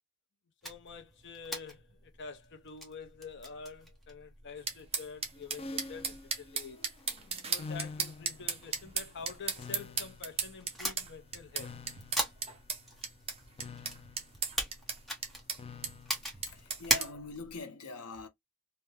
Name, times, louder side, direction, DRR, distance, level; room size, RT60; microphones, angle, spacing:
voice 1, 0.6-6.9 7.5-11.8, left 5 dB, 55° left, 0.7 m, -47 dB
sound 1, 0.6-17.6, equal, ahead, 1.0 m, -41 dB
sound 2, 4.7-17.1, right 6 dB, 25° right, 0.7 m, -37 dB
sound 3, 5.3-16.9, left 3 dB, 25° left, 0.4 m, -49 dB
voice 2, 16.2-18.3, left 3 dB, 85° left, 0.9 m, -44 dB
3.3 x 2.2 x 3.4 m
head